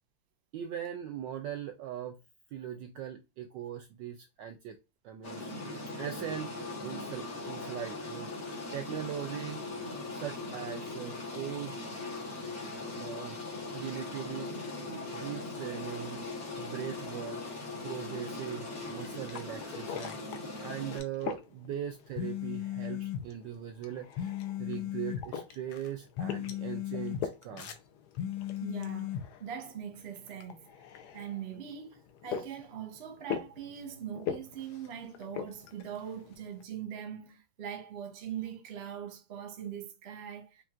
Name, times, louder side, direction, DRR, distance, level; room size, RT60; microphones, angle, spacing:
voice 1, 0.5-2.2 2.5-4.8 5.0-5.5 6.0-6.5 6.8-9.7 10.1-11.8 13.0-13.4 13.7-14.5 15.1-16.2 16.6-17.4 17.8-20.2 20.6-24.3 24.6-27.7, right 10 dB, 75° right, 1.1 m, -40 dB
sound 1, 5.2-21.0, left 2 dB, 45° left, 1.7 m, -40 dB
sound 2, 18.8-36.6, left 8 dB, 70° left, 1.0 m, -44 dB
sound 3, 22.2-23.3 24.2-25.3 26.2-27.3 28.2-29.3, left 11 dB, 85° left, 1.5 m, -36 dB
voice 2, 28.6-30.7 31.1-40.6, right 9 dB, 45° right, 0.8 m, -41 dB
5.3 x 2.7 x 2.4 m
omnidirectional pair, 2.3 m